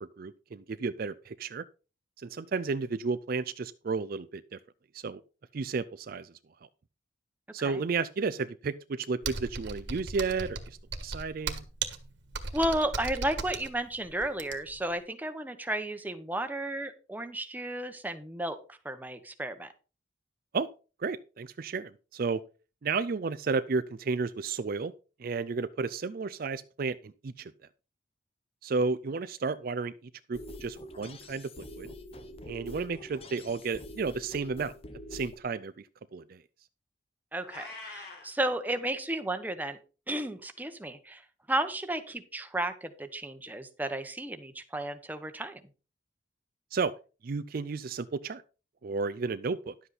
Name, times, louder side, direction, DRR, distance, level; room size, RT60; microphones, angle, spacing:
voice 1, 0.2-1.6 2.2-4.6 4.9-5.2 5.5-6.3 7.5-10.6 11.0-11.6 20.5-20.7 21.0-22.4 22.8-24.9 25.2-27.5 28.6-29.9 30.3-31.9 32.5-34.7 35.1-35.9 36.1-36.4 46.7-46.9 47.2-48.4 48.8-49.7, right 4 dB, 50° right, 13 dB, 0.4 m, -32 dB
Computer keyboard, 9.2-14.8, right 4 dB, 65° right, 1.5 m, -37 dB
voice 2, 12.5-19.7 37.3-39.8 40.1-41.2 41.5-45.6, right 1 dB, 10° right, 8 dB, 0.9 m, -33 dB
sound 1, 30.3-35.4, left 1 dB, 30° left, 0.9 m, -45 dB
Meow, 37.4-38.3, left 3 dB, 55° left, 4.7 m, -44 dB
11.0 x 7.9 x 4.1 m, 0.34 s
head